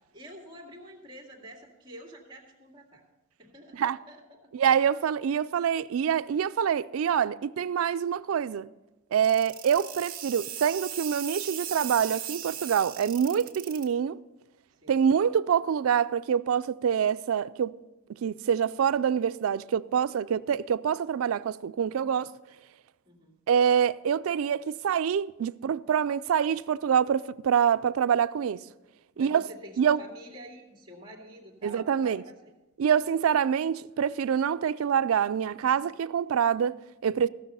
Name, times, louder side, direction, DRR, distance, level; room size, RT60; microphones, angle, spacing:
voice 1, 0.1-3.0 3.4-4.5 14.7-15.0 23.1-23.4 29.1-32.5, equal, 20° right, 2.1 m, -48 dB
voice 2, 4.5-8.7 9.1-14.2 14.9-17.7 18.2-22.3 23.5-28.6 29.2-29.5 29.8-30.0 31.6-32.2 32.8-37.3, right 8 dB, 80° right, 0.4 m, -26 dB
sound 1, 9.2-13.8, right 10 dB, 40° right, 1.8 m, -37 dB
15.5 x 6.5 x 5.5 m
head